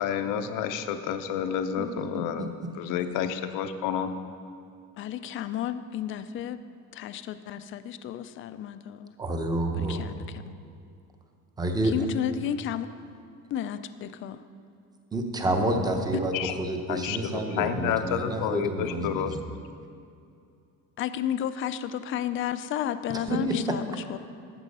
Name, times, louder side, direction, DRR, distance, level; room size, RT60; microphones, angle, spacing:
voice 1, 0.0-2.5 2.8-4.1 16.3-16.5 16.9-19.3, left 8 dB, 80° left, 9 dB, 0.8 m, -29 dB
voice 2, 1.8-2.7 9.2-10.1 11.6-11.9 15.1-19.4 23.1-23.8, right 1 dB, 10° right, 4 dB, 0.8 m, -29 dB
voice 3, 5.0-6.6 6.9-9.1 9.7-10.4 11.8-12.9 13.5-14.4 21.0-24.2, left 10 dB, 40° left, 12 dB, 0.4 m, -32 dB
13.0 x 8.3 x 5.4 m, 2.4 s
cardioid pair, 170°, 32 cm